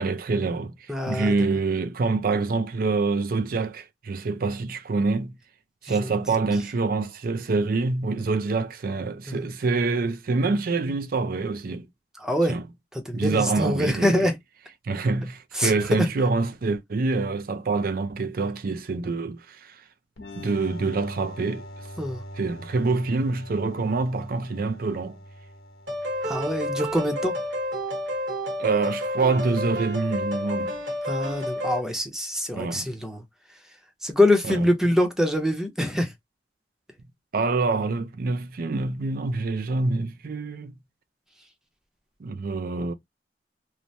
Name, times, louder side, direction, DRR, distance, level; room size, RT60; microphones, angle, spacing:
voice 1, 0.0-5.4 5.8-11.9 12.5-12.6 13.1-14.3 14.8-19.8 20.4-21.7 22.4-25.2 28.6-30.8 32.5-32.9 34.4-34.6 37.3-40.8 42.2-42.9, right 3 dB, 55° right, 0.4 m, -26 dB
voice 2, 0.9-1.3 6.0-6.1 9.3-9.5 12.2-12.6 12.9-14.3 15.5-15.7 16.0-16.1 22.0-22.2 26.3-27.3 31.1-33.2 34.0-36.1, left 1 dB, 5° right, 0.7 m, -24 dB
sound 1, 20.2-27.6, equal, 85° left, 0.9 m, -43 dB
sound 2, 25.9-31.8, equal, 70° right, 1.2 m, -30 dB
3.1 x 2.1 x 2.6 m
head